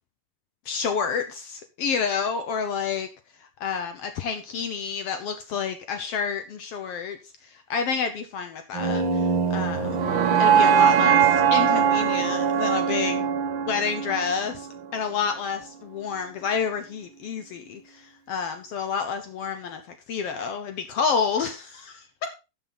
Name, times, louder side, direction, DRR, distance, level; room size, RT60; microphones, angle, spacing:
voice 1, 0.7-3.1 3.6-7.2 7.7-10.0 10.4-13.3 13.7-18.0 18.3-19.8 20.1-22.3, left 6 dB, 75° left, 8 dB, 1.3 m, -29 dB
sound 1, 8.7-14.9, right 7 dB, 55° right, 1.3 m, -21 dB
12.5 x 7.3 x 3.9 m, 0.29 s
omnidirectional pair, 3.9 m